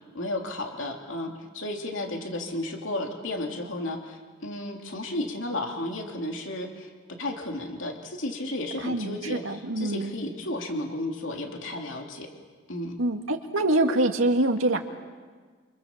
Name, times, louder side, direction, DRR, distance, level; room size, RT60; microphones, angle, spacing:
voice 1, 0.1-6.9 7.2-12.3 12.7-13.0, left 1 dB, 65° left, 2 dB, 3.2 m, -33 dB
voice 2, 8.8-10.1 13.0-14.8, right 2 dB, 85° right, 4 dB, 2.2 m, -25 dB
28.0 x 27.5 x 7.4 m, 1.5 s
head